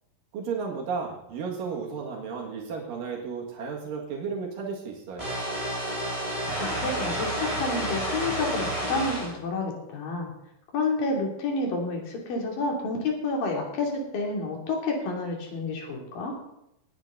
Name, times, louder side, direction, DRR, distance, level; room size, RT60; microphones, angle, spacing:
voice 1, 0.3-5.3, right 5 dB, 85° right, -1 dB, 3.5 m, -33 dB
sound 1, 5.2-9.3, right 1 dB, 10° right, 5.2 m, -30 dB
voice 2, 6.5-10.3 10.7-16.3, left 3 dB, 85° left, 0 dB, 4.5 m, -29 dB
19.0 x 9.1 x 3.9 m, 0.83 s
omnidirectional pair, 3.9 m